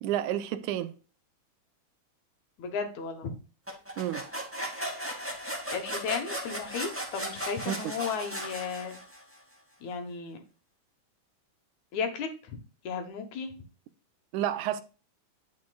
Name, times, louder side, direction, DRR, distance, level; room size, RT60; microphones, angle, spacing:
voice 1, 0.0-0.9 4.0-4.3 7.7-7.8 14.3-14.8, right 11 dB, 80° right, 2.0 m, -30 dB
voice 2, 2.6-3.3 5.7-9.0 9.8-10.4 11.9-12.6 12.8-13.5, left 5 dB, 70° left, 2.4 m, -34 dB
sound 1, 3.7-9.3, equal, 10° right, 0.9 m, -37 dB
9.5 x 6.4 x 2.3 m
omnidirectional pair, 3.7 m